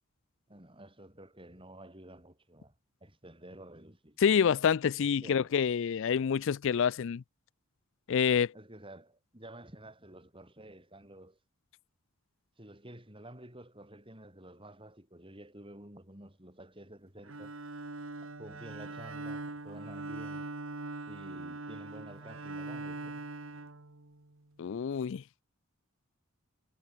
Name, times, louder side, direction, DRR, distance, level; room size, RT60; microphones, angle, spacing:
voice 1, 0.5-2.7 3.0-4.2 5.0-5.5 8.5-11.4 12.6-17.6 18.4-20.5 21.1-23.3, right 1 dB, 25° right, 5.8 m, -51 dB
voice 2, 4.2-7.2 8.1-8.5 24.6-25.2, left 7 dB, 60° left, 0.4 m, -27 dB
Bowed string instrument, 17.2-24.4, right 2 dB, 60° right, 1.8 m, -42 dB
head